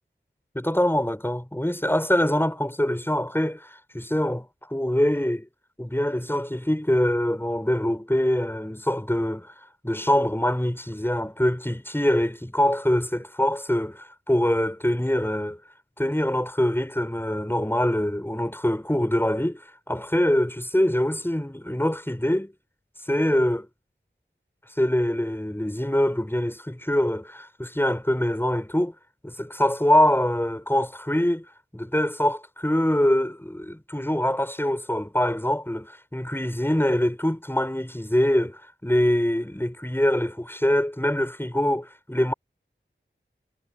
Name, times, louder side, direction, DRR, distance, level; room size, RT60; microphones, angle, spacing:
voice 1, 0.6-5.5 5.8-9.5 9.8-15.6 16.0-19.6 19.9-22.5 23.1-23.7 24.8-28.9 29.2-31.4 31.7-42.3, left 1 dB, 10° left, 7.2 m, -24 dB
wide cardioid pair, 50°, 20 cm